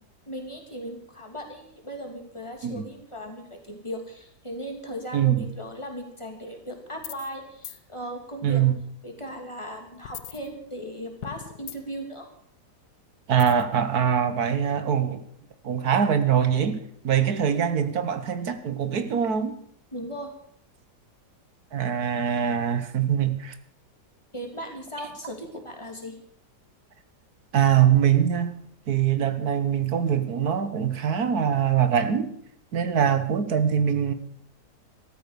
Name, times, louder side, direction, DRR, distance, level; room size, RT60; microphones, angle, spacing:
voice 1, 0.3-8.6 9.0-12.3 19.9-20.3 24.3-26.2, equal, 15° left, 3.1 m, -37 dB
voice 2, 5.1-5.5 8.4-8.7 13.3-15.2 15.6-19.6 21.7-23.6 27.5-32.3 32.7-34.1, right 8 dB, 65° right, 1.7 m, -23 dB
sound 1, 7.0-7.4 7.6-7.8 10.0-10.9 11.2-12.1 13.4-13.7, left 11 dB, 75° left, 1.4 m, -40 dB
13.5 x 13.5 x 6.8 m
omnidirectional pair, 1.8 m